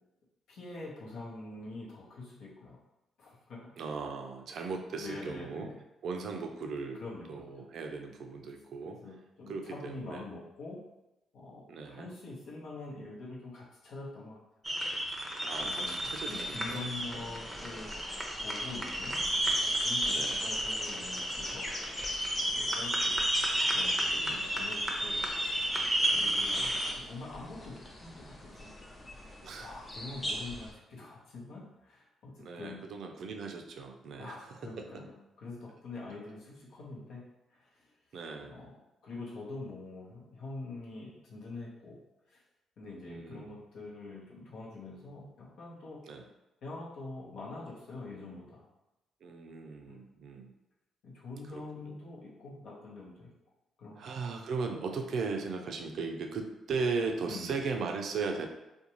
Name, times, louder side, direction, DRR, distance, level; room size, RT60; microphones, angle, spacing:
voice 1, 0.5-2.8 3.2-3.7 5.0-5.7 7.0-7.6 8.8-10.8 11.3-14.4 15.6-21.7 22.2-25.2 25.5-25.7 26.1-28.7 29.6-32.8 34.2-37.2 37.5-37.9 38.5-38.7 39.0-42.0 42.3-42.4 42.8-46.2 46.6-48.7 49.9-50.0 51.0-53.3 53.8-54.1 57.3-57.5, left 3 dB, 75° left, -4 dB, 0.9 m, -45 dB
voice 2, 3.8-5.7 6.0-7.0 7.3-9.0 9.5-10.3 11.7-12.1 15.4-16.8 17.1-17.3 20.1-20.4 24.1-24.4 26.0-26.8 29.4-29.8 32.4-35.0 38.1-38.6 43.1-43.6 46.0-46.2 49.2-50.5 51.5-52.0 54.0-58.5, right 4 dB, 70° right, 4 dB, 0.4 m, -38 dB
sound 1, 14.6-26.9, right 1 dB, 10° right, 0.6 m, -32 dB
sound 2, 15.5-30.7, left 1 dB, 30° left, 0.6 m, -43 dB
2.5 x 2.2 x 2.9 m, 0.97 s
supercardioid pair, 65°, 0 cm